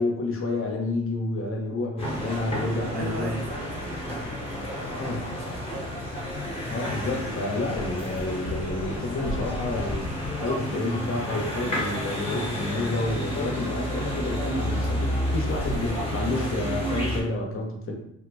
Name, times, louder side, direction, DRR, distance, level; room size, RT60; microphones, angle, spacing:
voice 1, 0.0-3.4 4.9-5.2 6.7-10.1 10.4-17.9, left 2 dB, 45° left, 1 dB, 0.7 m, -29 dB
sound 1, 2.0-17.2, equal, 20° left, 1.1 m, -30 dB
voice 2, 2.9-6.0 7.5-7.7, right 1 dB, 30° right, -1 dB, 0.7 m, -39 dB
3.3 x 2.1 x 3.2 m, 0.80 s
cardioid pair, 90°, 30 cm